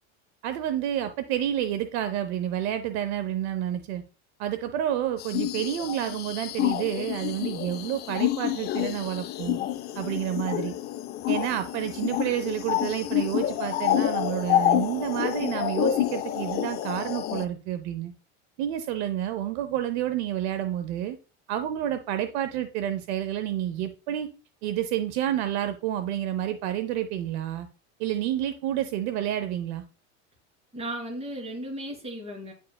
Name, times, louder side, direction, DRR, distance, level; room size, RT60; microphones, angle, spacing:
voice 1, 0.4-4.0 4.4-9.6 9.9-10.8 11.3-18.1 18.6-21.2 21.5-24.3 24.6-27.7 28.0-29.8, right 11 dB, 65° right, 0.7 m, -29 dB
sound 1, 5.2-17.4, left 12 dB, 30° left, 0.4 m, -28 dB
voice 2, 30.7-32.5, right 1 dB, 15° right, 3.4 m, -35 dB
9.6 x 4.6 x 2.3 m
supercardioid pair, 135°, 35 cm